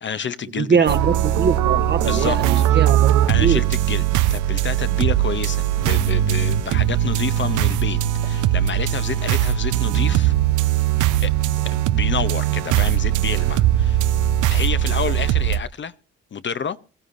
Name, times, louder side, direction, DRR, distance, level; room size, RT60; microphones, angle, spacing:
voice 1, 0.0-0.9 2.0-2.4 2.7-2.8 3.3-8.0 8.2-10.3 11.2-14.0 14.5-15.9 16.3-16.8, left 7 dB, 40° left, 0.7 m, -29 dB
voice 2, 0.6-3.1 3.4-3.6, right 6 dB, 35° right, 1.0 m, -22 dB
sound 1, 0.9-15.0, left 7 dB, 80° left, 0.9 m, -38 dB
sound 2, 0.9-15.6, right 13 dB, 85° right, 0.7 m, -20 dB
22.0 x 15.0 x 2.6 m
cardioid pair, 90°, 30 cm